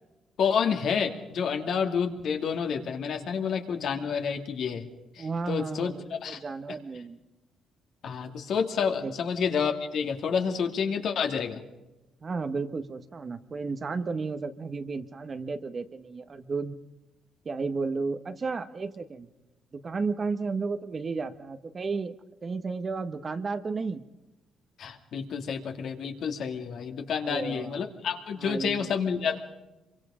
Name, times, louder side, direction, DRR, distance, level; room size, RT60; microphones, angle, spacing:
voice 1, 0.4-4.8 5.2-5.9 6.2-6.4 8.0-11.6 24.8-29.4, left 6 dB, 65° left, 4 dB, 2.6 m, -29 dB
voice 2, 5.2-7.2 9.0-9.2 12.2-16.8 17.4-19.3 19.7-22.1 22.4-24.0 27.2-27.9 28.4-28.9, right 4 dB, 35° right, 9 dB, 1.4 m, -33 dB
26.0 x 23.5 x 5.1 m, 1.0 s
cardioid pair, 100°, 0 cm